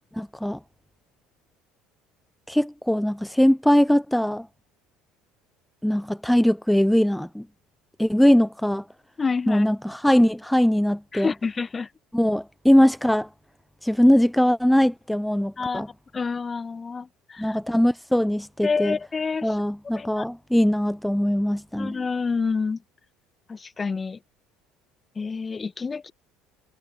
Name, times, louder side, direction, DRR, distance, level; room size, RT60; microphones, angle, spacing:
voice 1, 0.2-0.6 2.5-4.5 5.8-7.5 8.0-8.8 9.5-11.3 12.1-13.3 13.8-15.9 17.4-19.0 19.4-22.0, equal, 5° left, 0.7 m, -21 dB
voice 2, 9.2-9.7 11.1-11.9 15.6-15.9 16.1-17.6 18.6-19.6 19.9-20.2 21.8-22.8 23.5-24.2 25.1-26.1, left 4 dB, 25° left, 1.6 m, -28 dB
figure-of-eight pair, 60°, 0 cm